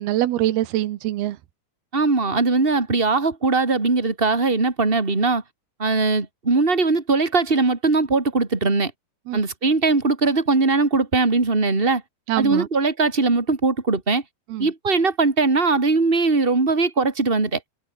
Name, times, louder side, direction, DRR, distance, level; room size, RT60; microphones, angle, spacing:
voice 1, 0.0-1.4 9.3-9.4 12.3-12.7 14.5-14.7, right 14 dB, 85° right, 3.2 m, -24 dB
voice 2, 1.9-5.4 5.8-8.9 9.3-12.0 12.4-14.2 14.6-17.6, right 3 dB, 15° right, 3.4 m, -20 dB
omnidirectional pair, 4.4 m